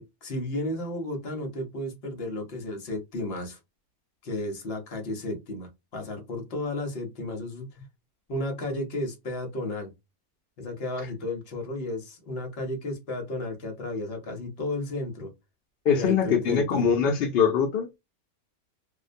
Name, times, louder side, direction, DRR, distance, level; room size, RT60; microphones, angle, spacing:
voice 1, 0.0-3.6 4.2-7.9 8.3-9.9 10.6-15.3 15.9-16.9, left 1 dB, 50° left, 0.8 m, -33 dB
voice 2, 15.9-18.0, left 6 dB, 75° left, 0.5 m, -23 dB
2.5 x 2.1 x 2.5 m
omnidirectional pair, 1.6 m